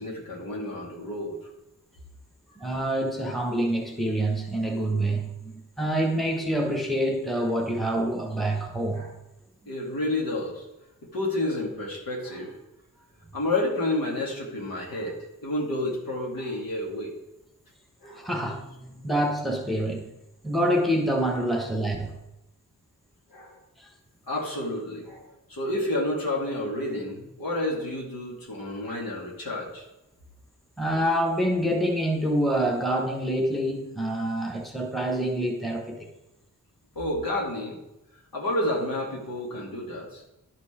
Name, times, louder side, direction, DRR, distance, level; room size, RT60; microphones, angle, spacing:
voice 1, 0.0-1.5 8.9-9.1 9.7-10.6 11.1-12.6 13.3-17.1 18.0-18.3 23.3-23.6 24.3-29.8 37.0-37.8 38.3-40.2, left 1 dB, 75° left, -2 dB, 2.3 m, -30 dB
voice 2, 2.6-9.1 18.1-20.1 20.4-22.1 23.8-23.9 30.8-36.1, right 1 dB, ahead, 1 dB, 1.3 m, -26 dB
11.5 x 4.6 x 4.4 m, 0.90 s
wide cardioid pair, 85°, 35 cm